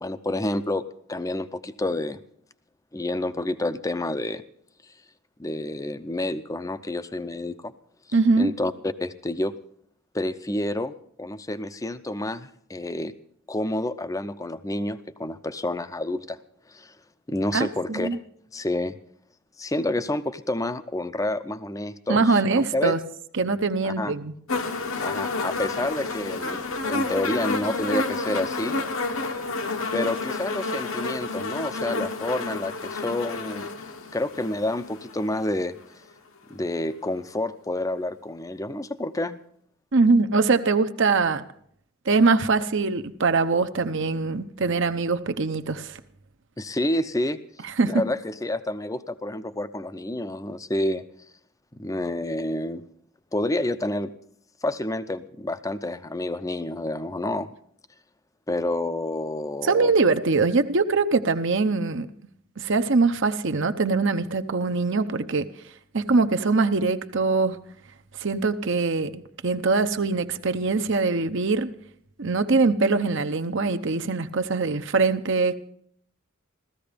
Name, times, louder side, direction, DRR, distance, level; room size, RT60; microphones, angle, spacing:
voice 1, 0.0-2.2 2.9-4.4 5.4-7.7 8.4-9.5 10.1-13.1 13.5-16.4 16.7-16.9 17.3-18.2 18.5-19.0 19.6-23.0 23.8-24.2 25.0-28.8 29.9-33.7 34.1-35.7 36.5-39.4 46.6-47.4 47.8-51.0 51.7-52.8 53.3-54.1 54.6-57.5 58.5-59.9, left 1 dB, 15° left, 12 dB, 0.6 m, -29 dB
voice 2, 8.1-8.5 17.5-18.2 22.1-23.0 23.4-24.3 39.9-41.4 42.1-46.0 47.8-48.0 59.6-62.1 62.6-65.5 65.9-67.6 68.2-71.7 72.2-75.6, right 3 dB, 55° right, 8 dB, 0.8 m, -22 dB
sound 1, 24.5-35.6 36.5-36.6, left 3 dB, 65° left, 1.1 m, -30 dB
15.5 x 14.0 x 5.1 m, 0.66 s
head